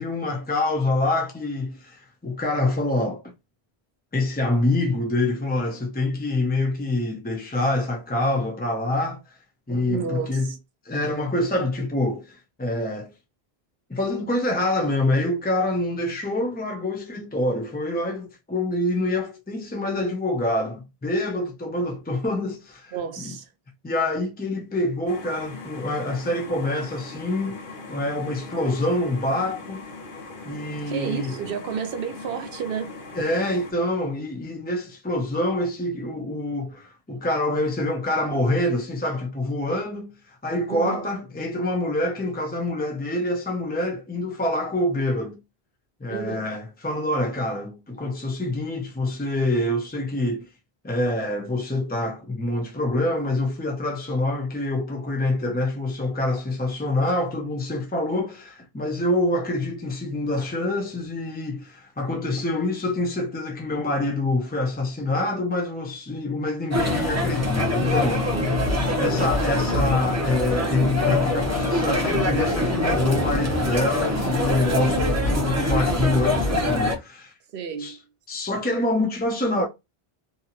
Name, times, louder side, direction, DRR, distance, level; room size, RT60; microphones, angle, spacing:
voice 1, 0.0-3.2 4.1-9.4 9.7-10.5 10.8-13.1 13.9-22.9 23.8-27.6 27.9-29.8 30.5-31.4 33.2-45.4 46.0-50.5 50.8-68.3 69.0-77.3 77.8-78.0 78.3-79.7, left 1 dB, 15° left, 0.3 m, -26 dB
voice 2, 9.9-10.6 22.9-23.5 30.9-33.0 40.7-41.1 46.1-46.5 68.3-68.6 77.5-78.0, right 7 dB, 65° right, 0.8 m, -31 dB
sound 1, 25.1-33.7, left 3 dB, 60° left, 1.0 m, -40 dB
sound 2, 66.7-77.0, left 1 dB, 20° right, 0.7 m, -23 dB
2.8 x 2.7 x 2.4 m
omnidirectional pair, 1.0 m